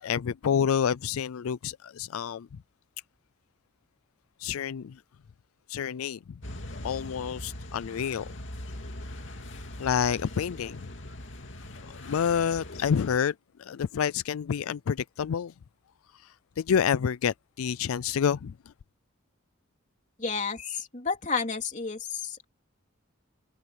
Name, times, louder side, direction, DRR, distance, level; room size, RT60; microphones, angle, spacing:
voice 1, 0.0-2.5 4.4-4.9 5.7-6.2 6.8-8.3 9.8-10.8 11.9-13.3 13.6-15.5 16.6-18.5, left 7 dB, 85° left, 0.4 m, -28 dB
sound 1, 6.4-13.2, left 1 dB, 60° left, 2.8 m, -41 dB
voice 2, 20.2-22.4, left 5 dB, 35° left, 3.4 m, -31 dB
head